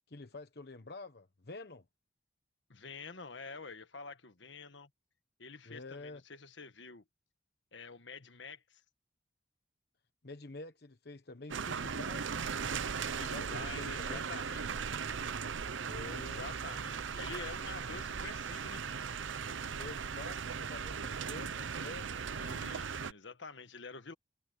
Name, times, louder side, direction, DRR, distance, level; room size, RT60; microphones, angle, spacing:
voice 1, 0.1-1.8 5.6-6.2 10.2-12.6 13.0-14.3 15.8-16.5 19.7-22.4, left 2 dB, 55° left, 1.1 m, -48 dB
voice 2, 2.7-4.9 5.4-7.0 7.7-8.8 12.7-12.9 13.2-14.8 16.1-18.8 22.4-24.1, left 4 dB, 75° left, 1.6 m, -48 dB
sound 1, 11.5-23.1, right 6 dB, 90° right, 0.7 m, -38 dB
head